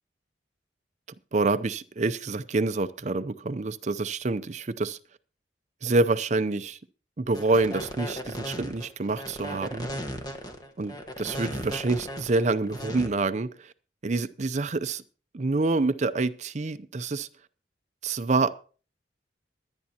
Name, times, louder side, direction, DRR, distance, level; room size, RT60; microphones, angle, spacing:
voice 1, 1.3-5.0 5.8-6.8 7.2-9.9 10.8-13.7 14.0-15.0 15.3-17.3 18.0-18.6, right 3 dB, 40° right, 0.5 m, -27 dB
sound 1, 7.3-13.1, equal, 20° left, 1.4 m, -36 dB
23.0 x 9.6 x 2.9 m
head